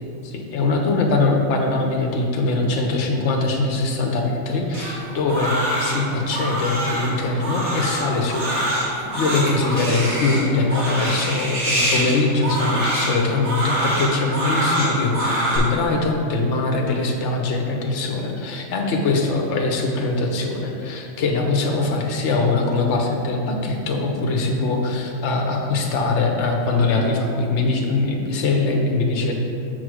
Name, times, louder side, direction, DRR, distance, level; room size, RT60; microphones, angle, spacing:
voice 1, 0.2-8.9 9.1-29.3, left 3 dB, 60° left, 1 dB, 1.1 m, -22 dB
Crying sobbing, 4.7-15.6, right 1 dB, 80° right, 2.3 m, -25 dB
6.3 x 4.4 x 6.2 m, 2.6 s
omnidirectional pair, 1.4 m